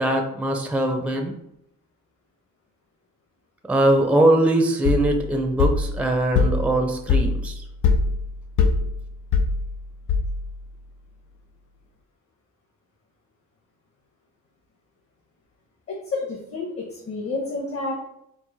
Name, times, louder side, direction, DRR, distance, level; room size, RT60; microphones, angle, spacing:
voice 1, 0.0-1.3 3.7-7.6, right 1 dB, 5° right, 3 dB, 0.5 m, -21 dB
sound 1, 4.8-10.7, left 4 dB, 75° left, 0.6 m, -23 dB
voice 2, 15.9-17.9, left 3 dB, 50° left, -2 dB, 1.1 m, -30 dB
4.5 x 2.0 x 4.0 m, 0.78 s
cardioid pair, 90°, 30 cm